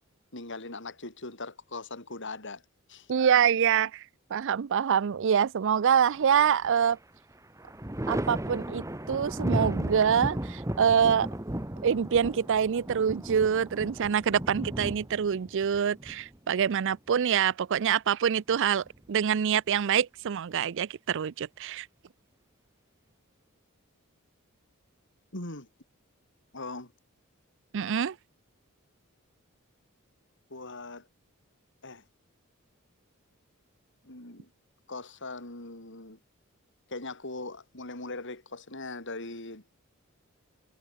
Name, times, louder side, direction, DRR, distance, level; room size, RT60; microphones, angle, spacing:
voice 1, 0.3-2.6 2.9-3.1 25.3-25.7 26.5-26.9 30.5-31.1 31.8-32.0 34.0-34.5 34.9-36.2 36.9-39.8, left 2 dB, 60° left, 7.2 m, -40 dB
voice 2, 3.1-4.1 4.3-7.0 8.1-11.3 11.8-21.9 27.7-28.2, right 8 dB, 60° right, 0.4 m, -25 dB
Thunder, 6.2-6.9 7.3-16.9 18.4-19.2, right 1 dB, 15° right, 1.7 m, -35 dB
head